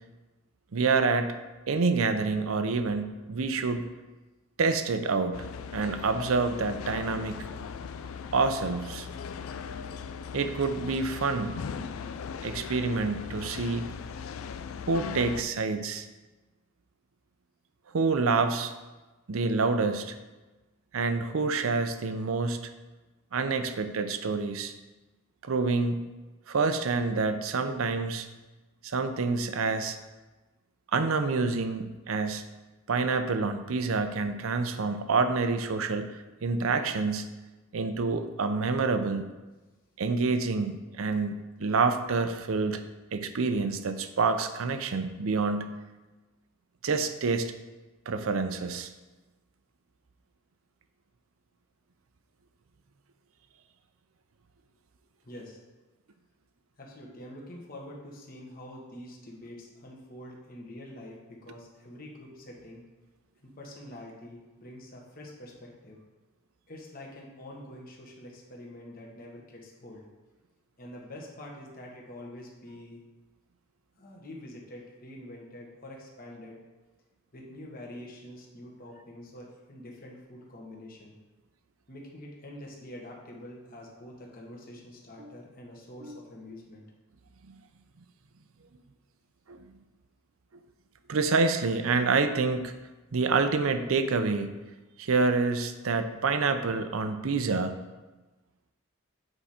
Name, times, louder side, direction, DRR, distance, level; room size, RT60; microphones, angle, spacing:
voice 1, 0.7-1.3 1.7-3.9 4.6-7.5 8.3-9.1 10.3-11.6 12.4-13.9 14.9-16.1 17.9-18.7 19.3-20.2 20.9-22.7 23.3-24.7 25.4-26.0 26.5-28.3 28.8-30.0 30.9-32.5 32.9-37.3 37.7-39.2 40.0-42.9 43.1-45.8 46.8-47.5 48.1-48.9 85.2-85.3 86.0-86.2 87.5-87.6 89.5-89.6 91.1-92.7 93.1-94.6 95.0-97.7, right 4 dB, 75° right, 9 dB, 0.6 m, -27 dB
sound 1, 5.3-15.4, left 6 dB, 75° left, 0.4 m, -39 dB
voice 2, 55.2-55.6 56.8-62.8 63.4-66.0 66.7-70.0 70.8-73.0 74.0-76.5 77.3-81.1 81.9-86.9, left 1 dB, 45° left, -2 dB, 1.3 m, -46 dB
8.1 x 4.7 x 4.2 m, 1.2 s
head